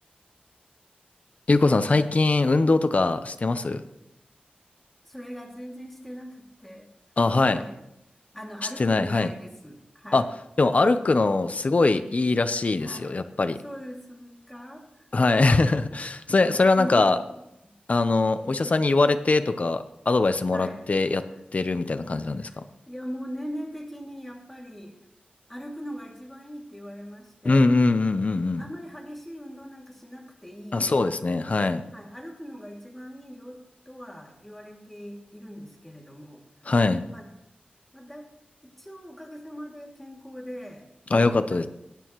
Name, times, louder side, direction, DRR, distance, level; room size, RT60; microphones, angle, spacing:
voice 1, 1.5-3.8 7.2-7.6 8.8-9.3 10.1-10.2 10.6-13.6 15.1-17.2 17.9-21.2 21.5-22.5 27.4-28.6 30.7-31.8 36.7-37.0 41.1-41.7, left 3 dB, 45° left, 10 dB, 0.7 m, -22 dB
voice 2, 5.0-6.9 7.5-7.8 8.3-10.3 12.8-13.3 13.6-16.0 16.4-17.3 17.6-17.7 20.5-20.8 21.3-21.4 22.4-22.6 22.9-24.9 25.5-27.8 28.6-31.5 31.9-33.6 33.9-36.4 37.1-37.3 37.9-38.3 38.6-41.7, equal, 5° left, -1 dB, 2.5 m, -41 dB
19.5 x 9.2 x 3.1 m, 0.88 s
wide cardioid pair, 85°, 3 cm